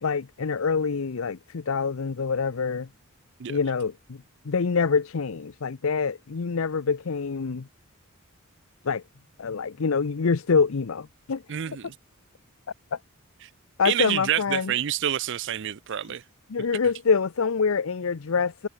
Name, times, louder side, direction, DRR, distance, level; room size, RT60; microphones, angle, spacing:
voice 1, 0.0-2.9 3.5-4.2 4.4-7.7 8.8-9.0 9.4-11.4 12.9-13.0 13.8-14.7 16.5-18.7, left 5 dB, 70° left, 0.6 m, -25 dB
voice 2, 11.5-11.9 13.8-16.2, right 10 dB, 55° right, 0.5 m, -28 dB
head